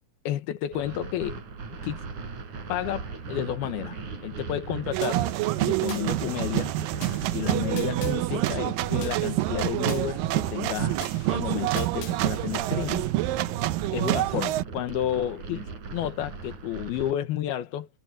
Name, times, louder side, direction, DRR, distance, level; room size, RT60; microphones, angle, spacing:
voice 1, 0.2-1.4 1.8-2.1 2.7-5.3 5.6-6.7 7.3-11.0 11.3-13.1 13.9-17.9, left 11 dB, 90° left, 3.3 m, -31 dB
sound 1, 0.7-17.1, right 4 dB, 55° right, 6.4 m, -39 dB
sound 2, 4.9-14.6, right 17 dB, 80° right, 2.3 m, -27 dB
sound 3, 5.0-6.0 7.0-8.2 9.0-10.0 11.0-12.2, left 12 dB, 65° left, 2.5 m, -44 dB
omnidirectional pair, 4.3 m